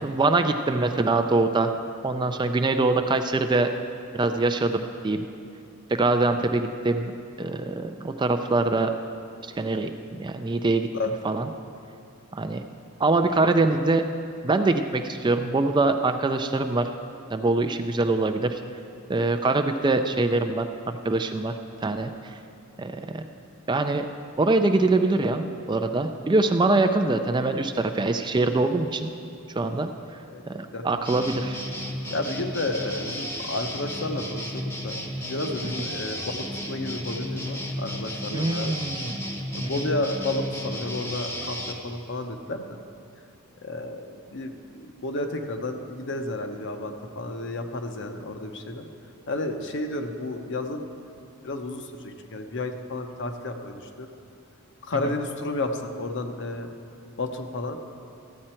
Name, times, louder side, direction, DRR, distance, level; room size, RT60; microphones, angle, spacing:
voice 1, 0.0-1.7 2.0-3.7 4.1-5.2 5.9-8.9 9.6-10.9 11.2-11.5 12.3-12.6 13.0-14.0 14.4-16.9 17.3-18.6 19.1-20.7 21.0-21.5 21.8-22.3 22.8-23.3 23.7-24.1 24.4-29.1 29.6-29.9 30.5-31.6 38.3-39.2 39.6-39.9 55.1-55.2, right 2 dB, 20° right, 7 dB, 0.4 m, -24 dB
voice 2, 10.9-11.3 30.3-30.8 32.1-38.8 39.5-42.6 43.6-48.8 49.3-50.9 51.4-54.1 54.8-56.7 57.2-57.8, left 2 dB, 55° left, 5 dB, 0.8 m, -32 dB
sound 1, 31.0-41.7, equal, 10° left, 0.8 m, -33 dB
13.5 x 8.6 x 4.4 m, 2.5 s
head